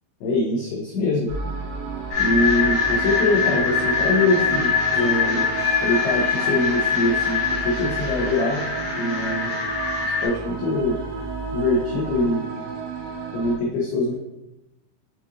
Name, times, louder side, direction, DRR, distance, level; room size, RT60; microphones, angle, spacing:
voice 1, 0.2-1.3 2.2-5.5 5.8-8.6 8.9-9.6 10.0-11.0 11.5-12.5 13.3-14.1, left 2 dB, 90° left, -3 dB, 2.2 m, -23 dB
sound 1, 1.3-13.6, right 5 dB, 85° right, 3.3 m, -31 dB
sound 2, 2.1-10.3, left 6 dB, 70° left, 2.3 m, -24 dB
Bell / Doorbell, 4.9-10.0, right 5 dB, 70° right, 2.4 m, -42 dB
7.0 x 2.7 x 2.4 m, 0.93 s
omnidirectional pair, 5.4 m